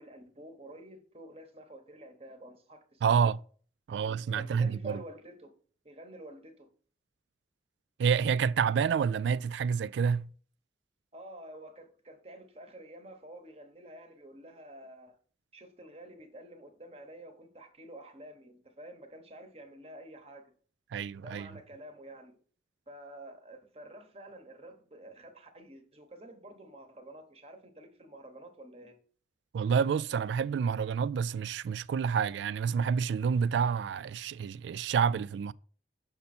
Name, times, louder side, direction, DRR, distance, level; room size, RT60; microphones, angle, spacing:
voice 1, 0.0-3.3 3.9-4.0 4.3-5.5 5.8-6.7 11.1-15.2 15.5-20.5 21.2-22.4 22.9-29.0, right 1 dB, 35° right, 1.1 m, -49 dB
voice 2, 3.0-3.4 3.9-5.0 8.0-10.3 20.9-21.5 29.5-35.5, right 6 dB, 80° right, 0.3 m, -28 dB
6.9 x 5.3 x 4.3 m
head